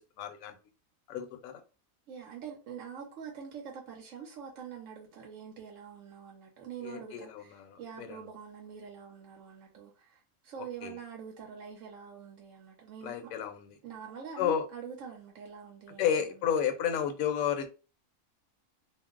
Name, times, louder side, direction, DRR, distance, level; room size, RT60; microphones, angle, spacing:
voice 1, 0.2-0.6 1.1-1.6 6.8-8.3 10.8-11.0 13.0-13.8 14.4-14.7 16.0-17.7, left 8 dB, 75° left, 1.0 m, -32 dB
voice 2, 2.1-13.3 13.8-16.1, right 7 dB, 70° right, 1.0 m, -45 dB
2.5 x 2.0 x 3.6 m
omnidirectional pair, 1.5 m